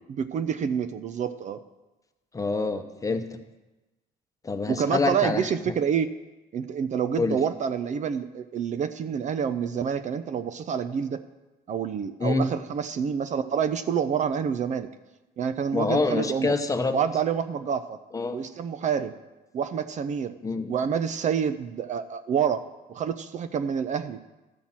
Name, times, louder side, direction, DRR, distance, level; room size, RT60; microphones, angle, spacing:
voice 1, 0.1-1.6 4.7-6.1 6.5-11.2 11.7-14.9 15.4-16.6 16.9-18.0 18.3-19.1 19.5-20.3 20.7-22.6 22.9-24.2, right 7 dB, 45° right, 12 dB, 0.5 m, -27 dB
voice 2, 2.3-3.4 4.4-5.5 7.2-7.4 12.2-12.5 15.7-17.0 18.1-18.4 20.4-20.7, left 3 dB, 20° left, 7 dB, 0.9 m, -26 dB
12.5 x 5.8 x 7.4 m, 1.1 s
cardioid pair, 110°, 17 cm